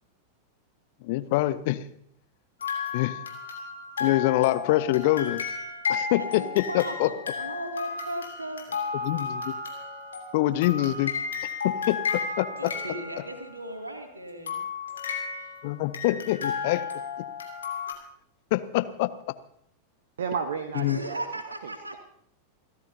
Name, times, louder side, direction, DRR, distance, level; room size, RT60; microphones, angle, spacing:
voice 1, 1.0-1.8 2.9-3.1 4.0-5.4 5.9-7.1 9.0-9.5 10.3-11.1 11.6-12.0 12.4-12.5 15.6-16.8 18.5-19.1 20.8-21.0, left 16 dB, 50° left, 14 dB, 0.7 m, -25 dB
sound 1, 2.6-13.7 14.5-17.9, left 5 dB, 70° left, 2.8 m, -33 dB
voice 2, 6.2-8.7 12.6-14.6 20.7-22.0, right 1 dB, 80° right, 3 dB, 2.6 m, -37 dB
voice 3, 20.2-21.2 21.6-22.0, right 6 dB, 65° right, 8 dB, 1.0 m, -32 dB
29.5 x 13.5 x 2.8 m, 0.69 s
figure-of-eight pair, 90°, 0 cm